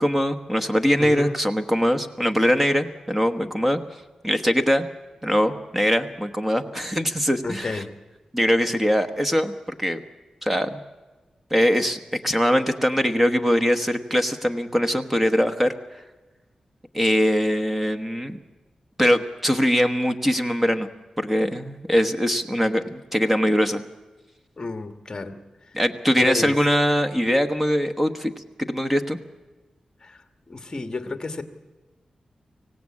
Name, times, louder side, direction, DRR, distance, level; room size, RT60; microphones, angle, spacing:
voice 1, 0.0-3.8 4.2-4.9 5.2-7.8 8.3-10.0 10.4-10.8 11.5-15.7 16.9-18.4 19.0-20.9 21.2-23.8 25.7-28.3 28.6-29.2, equal, 10° right, 9 dB, 1.1 m, -22 dB
voice 2, 1.0-1.4 7.4-7.9 24.6-25.4 26.2-26.6 30.0-30.2 30.5-31.4, left 3 dB, 30° left, 7 dB, 1.5 m, -31 dB
25.0 x 17.0 x 8.6 m, 1.2 s
wide cardioid pair, 175°, 2 cm